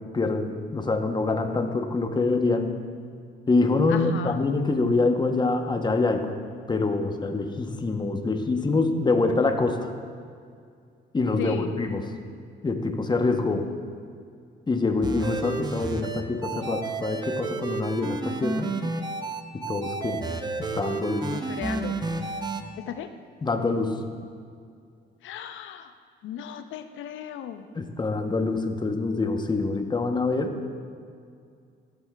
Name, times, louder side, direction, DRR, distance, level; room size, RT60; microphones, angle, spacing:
voice 1, 0.0-2.7 3.5-6.3 6.7-9.9 11.1-12.0 12.6-13.7 14.7-18.7 19.5-20.2 20.6-21.3 23.4-24.0 27.8-30.5, left 3 dB, 20° left, 5 dB, 0.8 m, -25 dB
voice 2, 3.9-4.4 11.4-11.8 21.3-22.0 22.9-23.1 25.2-25.9 26.2-27.7, left 9 dB, 75° left, 8 dB, 0.6 m, -35 dB
sound 1, 15.0-22.6, right 3 dB, 20° right, 0.6 m, -31 dB
14.5 x 7.1 x 2.3 m, 2.3 s
cardioid pair, 90°, 20 cm